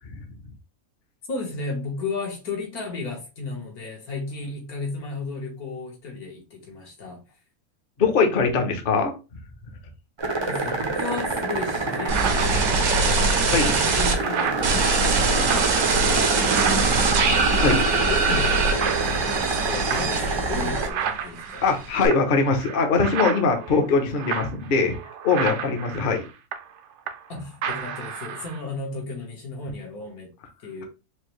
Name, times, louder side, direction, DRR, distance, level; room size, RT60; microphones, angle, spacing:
voice 1, 1.3-7.2 10.5-13.3 13.5-21.7 27.3-30.3 30.6-30.8, left 3 dB, 75° left, 1.7 m, -34 dB
voice 2, 8.0-9.1 13.5-13.7 15.0-15.1 17.6-17.8 21.6-24.9 25.2-26.3, left 4 dB, 45° left, 0.7 m, -21 dB
sound 1, 10.2-20.9, right 3 dB, 45° right, 0.3 m, -27 dB
sound 2, 11.1-11.2 11.7-18.0 18.2-18.5 18.8-27.3 27.6-28.6, right 8 dB, 65° right, 0.7 m, -33 dB
sound 3, 12.1-14.1 14.6-21.2 21.5-22.1, right 4 dB, 80° right, 1.3 m, -23 dB
4.5 x 2.6 x 3.1 m
omnidirectional pair, 1.6 m